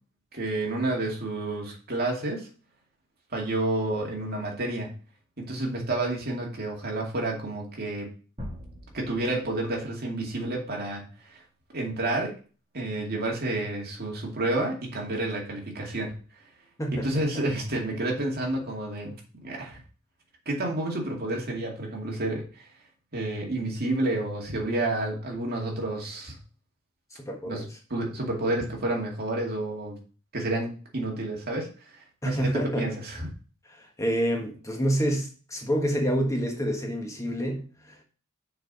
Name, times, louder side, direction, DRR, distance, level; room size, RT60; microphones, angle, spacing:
voice 1, 0.3-2.5 3.3-4.9 5.4-8.1 8.9-11.4 11.7-12.4 12.7-16.1 16.9-19.2 19.4-19.8 20.5-22.6 23.1-26.4 27.5-27.6 27.9-30.0 30.3-32.5 32.8-33.3, right 2 dB, 50° right, 2.4 m, -30 dB
sound 1, 8.4-10.3, equal, 30° right, 3.1 m, -43 dB
voice 2, 16.8-17.4 27.1-27.8 32.2-32.9 33.7-38.0, equal, 15° left, 1.3 m, -28 dB
6.7 x 4.6 x 5.5 m
head